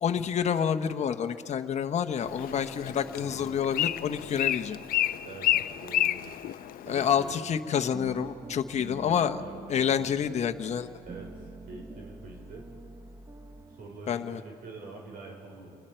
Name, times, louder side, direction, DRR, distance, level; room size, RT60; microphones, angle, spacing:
voice 1, 0.0-4.8 6.9-9.4 9.7-10.9 14.1-14.4, left 8 dB, 40° left, 7 dB, 1.0 m, -28 dB
Bird, 2.2-7.4, left 12 dB, 60° left, 0.6 m, -31 dB
sound 1, 2.2-7.4 7.7-14.0, right 3 dB, 20° right, 0.9 m, -47 dB
voice 2, 5.2-6.6 6.8-7.5 8.9-10.1 11.1-12.7 13.7-15.8, right 3 dB, 60° right, 1 dB, 3.9 m, -46 dB
29.0 x 20.5 x 4.5 m, 2.5 s
cardioid pair, 110°, 17 cm